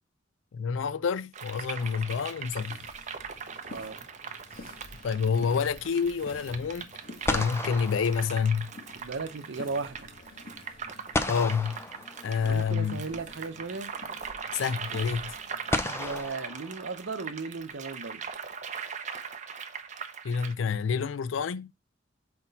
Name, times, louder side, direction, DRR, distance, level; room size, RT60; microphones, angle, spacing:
voice 1, 0.5-2.8 5.0-6.9 7.3-8.7 11.3-11.8 12.2-13.1 14.5-15.4 20.2-21.7, left 6 dB, 90° left, 0.4 m, -28 dB
sound 1, 1.3-20.5, right 6 dB, 40° right, 0.7 m, -41 dB
sound 2, 1.8-2.7 6.7-6.8 7.3-9.0 11.1-12.7 14.1-14.2 15.7-17.4, left 2 dB, 15° left, 0.5 m, -34 dB
sound 3, 2.4-16.3, left 2 dB, 50° left, 1.5 m, -50 dB
voice 2, 3.7-4.1 9.0-10.1 12.4-13.9 15.9-18.2, right 4 dB, 75° right, 0.8 m, -36 dB
5.8 x 4.3 x 4.1 m
head